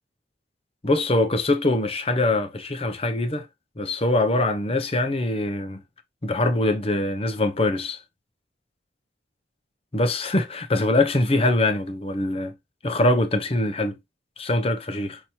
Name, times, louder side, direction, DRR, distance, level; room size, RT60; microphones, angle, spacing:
voice 1, 0.8-3.5 3.8-5.8 6.2-8.0 9.9-12.5 12.8-14.0 14.4-15.2, left 2 dB, 35° left, 0.8 m, -23 dB
6.0 x 2.8 x 2.9 m
head